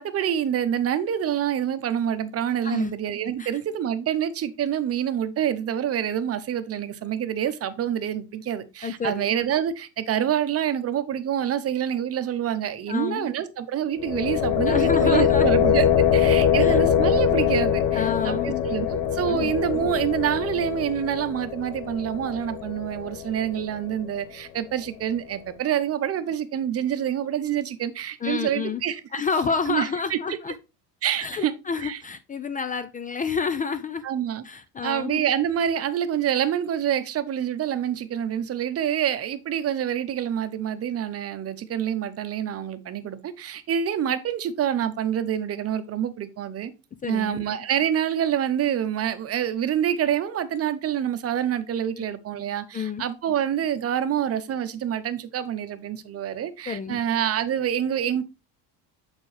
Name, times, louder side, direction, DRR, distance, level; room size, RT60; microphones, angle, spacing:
voice 1, 0.0-29.0 29.7-30.2 31.0-31.5 31.8-32.0 34.0-34.4 34.8-46.7 47.1-58.2, right 9 dB, 35° right, 0.8 m, -27 dB
voice 2, 8.8-9.2 12.9-13.3 14.7-15.7 16.6-16.8 17.9-18.7 19.3-19.5 28.2-28.8 29.1-30.6 31.2-34.0 34.4-35.2 47.0-47.4 52.7-53.0 56.7-57.0, left 5 dB, 20° left, 0.3 m, -29 dB
sound 1, 14.0-23.9, left 8 dB, 75° left, 0.9 m, -23 dB
7.0 x 4.4 x 3.3 m
cardioid pair, 115°, 40 cm